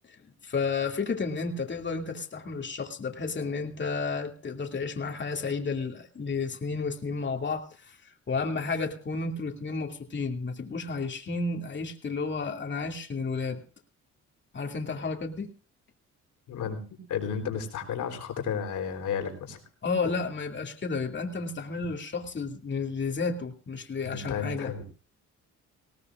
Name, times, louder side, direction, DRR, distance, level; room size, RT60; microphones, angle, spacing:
voice 1, 0.4-8.0 8.3-13.6 14.5-15.5 19.8-24.7, left 4 dB, 40° left, 3 dB, 2.5 m, -32 dB
voice 2, 16.5-19.6 24.0-24.9, left 7 dB, 80° left, 5 dB, 3.9 m, -33 dB
19.5 x 18.0 x 2.5 m, 0.38 s
cardioid pair, 90°, 30 cm